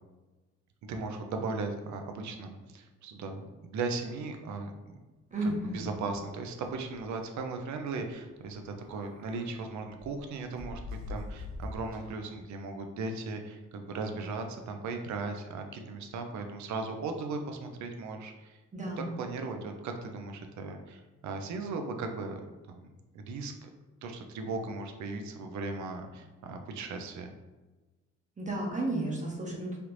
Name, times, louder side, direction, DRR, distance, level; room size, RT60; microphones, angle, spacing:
voice 1, 0.9-5.0 5.4-18.6 19.2-22.4 22.7-23.7 24.0-27.3, right 3 dB, 70° right, 5 dB, 0.6 m, -37 dB
voice 2, 5.3-5.9 18.7-19.2 28.4-29.8, right 1 dB, 25° right, -2 dB, 0.8 m, -33 dB
sound 1, 5.3-6.3 6.6-6.7 7.0-7.2 8.4-9.5 10.0-12.2, left 2 dB, 45° right, 1.3 m, -44 dB
3.3 x 2.5 x 3.0 m, 1.2 s
cardioid pair, 90°, 30 cm